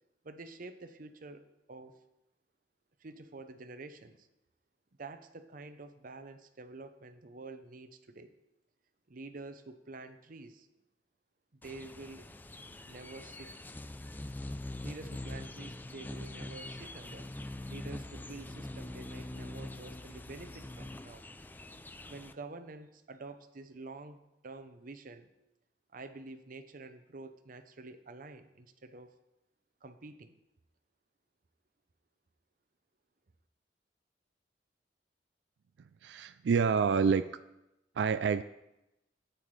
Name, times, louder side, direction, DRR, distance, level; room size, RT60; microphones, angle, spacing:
voice 1, 0.2-2.0 3.0-4.3 5.0-8.3 9.1-10.7 11.5-12.3 12.8-13.6 14.8-17.3 17.7-21.2 22.1-25.3 25.9-29.1 29.8-30.4, right 3 dB, 50° right, 9 dB, 0.7 m, -48 dB
sound 1, 11.6-22.3, left 1 dB, 10° left, 0.4 m, -44 dB
voice 2, 36.0-37.2 38.0-38.4, right 6 dB, 80° right, 11 dB, 0.3 m, -27 dB
12.5 x 9.1 x 3.3 m, 0.92 s
head